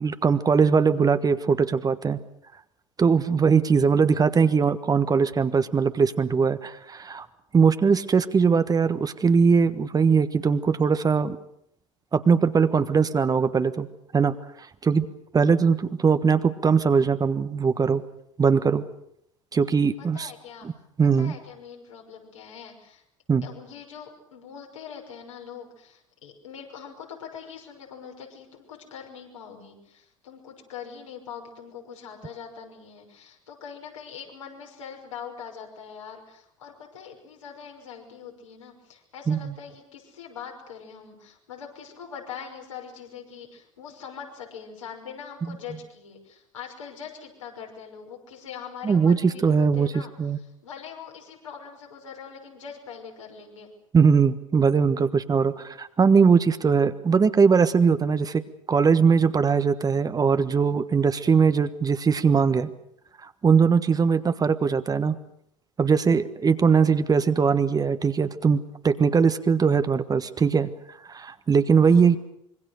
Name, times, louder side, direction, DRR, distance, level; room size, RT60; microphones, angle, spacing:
voice 1, 0.0-2.2 3.0-7.3 7.5-11.4 12.1-13.9 14.1-14.4 14.8-15.1 15.3-18.0 18.4-18.8 19.5-20.3 20.6-20.7 21.0-21.3 23.3-23.5 39.3-39.5 48.8-50.4 53.9-58.4 58.7-62.7 63.2-65.2 65.8-70.7 71.0-72.2, right 5 dB, 25° right, 11 dB, 1.4 m, -21 dB
voice 2, 20.0-20.7 21.0-23.0 23.4-50.1 50.4-53.7 55.6-55.7 71.8-72.2, left 7 dB, 75° left, 0 dB, 5.9 m, -42 dB
26.0 x 23.0 x 6.6 m, 0.73 s
figure-of-eight pair, 70°, 16 cm